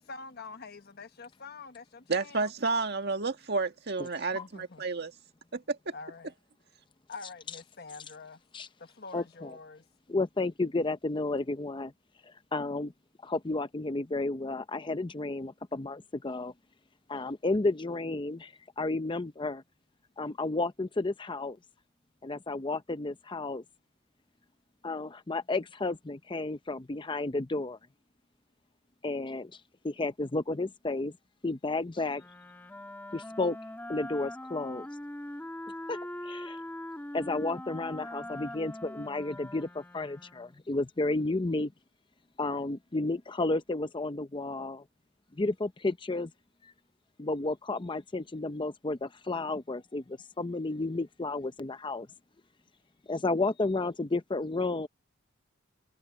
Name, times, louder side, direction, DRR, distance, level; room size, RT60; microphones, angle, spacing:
voice 1, 0.0-2.5 4.3-4.8 5.9-6.3 7.1-8.4 9.0-9.8, left 4 dB, 55° left, 1.2 m, -46 dB
voice 2, 2.1-5.1 5.5-5.9, right 4 dB, 55° right, 1.8 m, -31 dB
voice 3, 9.1-9.6 10.1-11.9 12.2-12.9 13.2-16.5 17.1-19.6 20.2-21.6 22.2-23.6 24.8-27.8 29.0-29.6 29.8-31.1 31.4-32.2 33.1-33.6 33.9-34.9 35.9-36.6 37.1-41.7 42.4-44.8 45.3-46.3 46.6-46.7 47.2-52.1 53.1-54.9, left 2 dB, 25° left, 0.6 m, -32 dB
Wind instrument woodwind instrument, 32.1-40.7, left 1 dB, 10° left, 2.0 m, -42 dB
head